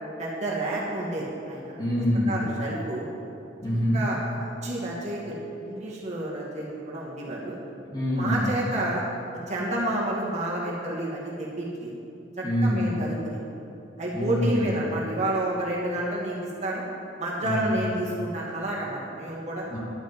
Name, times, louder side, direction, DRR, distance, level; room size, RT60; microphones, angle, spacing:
voice 1, 0.2-1.8 2.3-3.1 3.9-7.6 8.2-9.0 9.5-12.0 12.4-13.4 14.0-16.8 17.2-19.7, right 1 dB, 40° right, -5 dB, 2.5 m, -30 dB
voice 2, 1.8-2.4 3.6-4.0 7.3-7.4 7.9-8.5 12.4-13.0 14.1-14.7 17.4-17.8 19.7-19.8, left 1 dB, 20° left, -6 dB, 3.3 m, -25 dB
11.5 x 7.2 x 9.2 m, 2.6 s
head